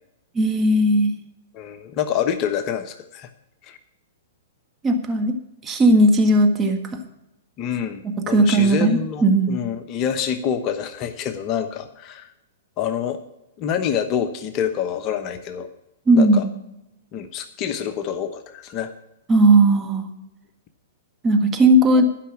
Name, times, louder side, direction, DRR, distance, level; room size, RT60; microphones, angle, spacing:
voice 1, 0.3-1.1 4.8-5.3 5.6-6.8 8.2-9.6 16.1-16.5 19.3-20.1 21.2-22.1, right 1 dB, 20° right, 4 dB, 1.6 m, -16 dB
voice 2, 1.5-3.3 3.6-3.8 7.6-12.3 12.8-13.2 13.6-15.7 16.1-16.4 17.1-18.9 22.0-22.1, left 8 dB, 35° left, 8 dB, 0.9 m, -27 dB
11.5 x 5.7 x 8.4 m, 0.88 s
hypercardioid pair, 120°, 0 cm